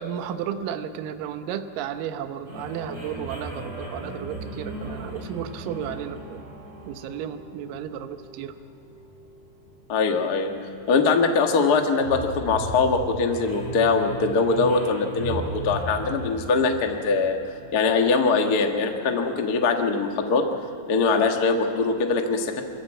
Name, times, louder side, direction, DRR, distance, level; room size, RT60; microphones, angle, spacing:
voice 1, 0.0-6.4 6.9-8.6, right 9 dB, 70° right, 9 dB, 2.3 m, -33 dB
sound 1, 2.5-17.9, right 1 dB, 25° right, 5.3 m, -37 dB
voice 2, 9.9-10.5 10.9-17.4 17.7-20.4 20.9-22.6, left 4 dB, 85° left, 3 dB, 0.8 m, -22 dB
23.0 x 14.5 x 8.6 m, 2.9 s
omnidirectional pair, 4.5 m